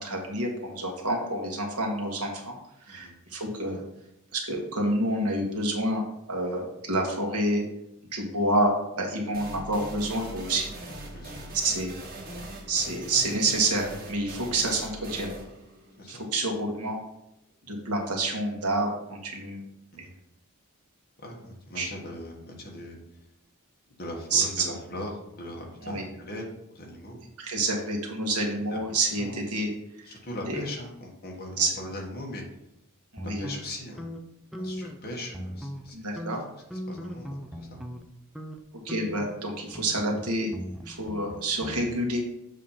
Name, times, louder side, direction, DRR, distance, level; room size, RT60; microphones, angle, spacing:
voice 1, 0.0-3.8 4.3-7.6 8.1-10.7 11.5-12.0 12.7-15.3 16.1-17.0 17.7-19.6 21.8-21.9 24.3-24.6 25.8-26.0 27.4-29.7 30.5-30.6 31.6-31.7 33.1-33.5 35.9-36.4 38.7-40.5 40.8-42.2, right 2 dB, 90° right, 0 dB, 1.6 m, -28 dB
sound 1, 9.3-16.8, right 1 dB, 45° right, 1.3 m, -41 dB
voice 2, 11.1-11.4 14.3-14.5 16.0-16.2 19.9-20.1 21.2-23.0 24.0-27.2 27.5-27.7 28.7-28.8 29.2-29.4 30.0-32.4 33.2-34.1 34.6-37.9, left 1 dB, 45° left, -1 dB, 1.5 m, -40 dB
sound 2, 33.2-35.0 35.3-35.9 36.2-38.1 38.4-38.6 38.9-41.9, equal, ahead, 0.5 m, -39 dB
7.3 x 2.9 x 5.6 m, 0.84 s
head